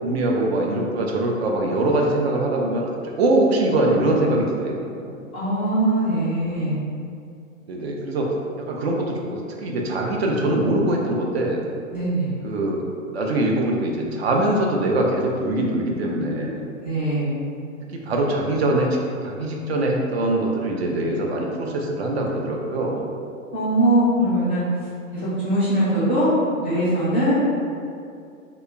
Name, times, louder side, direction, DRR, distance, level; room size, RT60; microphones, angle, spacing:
voice 1, 0.0-5.1 7.7-8.3 8.7-11.6 12.4-12.8 13.1-16.7 17.9-18.9 19.2-23.1, right 1 dB, 50° right, -1 dB, 0.5 m, -23 dB
voice 2, 5.3-6.8 11.9-12.4 16.8-17.4 23.5-24.6 25.1-26.3 26.6-27.4, right 1 dB, 10° left, -13 dB, 0.3 m, -21 dB
2.9 x 2.2 x 3.3 m, 2.4 s
figure-of-eight pair, 105°, 41 cm